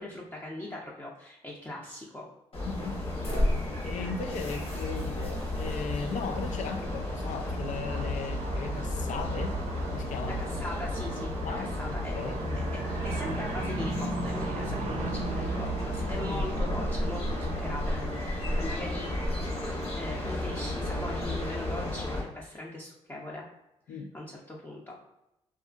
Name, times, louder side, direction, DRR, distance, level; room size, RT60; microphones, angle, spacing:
voice 1, 0.0-2.3 10.3-12.1 12.5-19.1 20.0-23.5 23.9-25.0, left 1 dB, 15° left, -4 dB, 0.6 m, -40 dB
sound 1, 2.5-22.2, left 1 dB, 45° left, 1.2 m, -32 dB
voice 2, 2.6-3.0 3.8-9.6 9.9-10.4 11.4-12.4 16.2-16.4 23.9-24.1, left 5 dB, 70° left, 5 dB, 0.4 m, -37 dB
Aircraft, 5.0-22.2, right 6 dB, 60° right, 0.4 m, -40 dB
2.7 x 2.4 x 2.4 m, 0.88 s
supercardioid pair, 60°, 13 cm